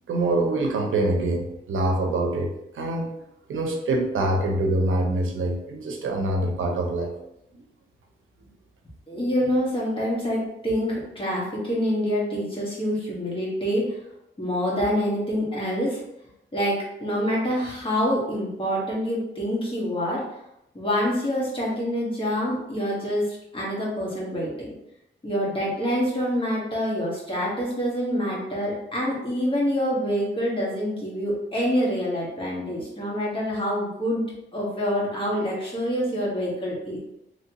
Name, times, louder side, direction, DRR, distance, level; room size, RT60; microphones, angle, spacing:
voice 1, 0.1-3.1 3.5-7.1 9.1-9.2, right 2 dB, 85° right, 2 dB, 0.6 m, -25 dB
voice 2, 9.1-14.0 14.4-16.0 16.5-20.2 20.7-24.7 25.2-34.2 34.5-37.0, equal, 25° left, -5 dB, 1.2 m, -26 dB
3.0 x 2.8 x 2.8 m, 0.85 s
wide cardioid pair, 100°, 20 cm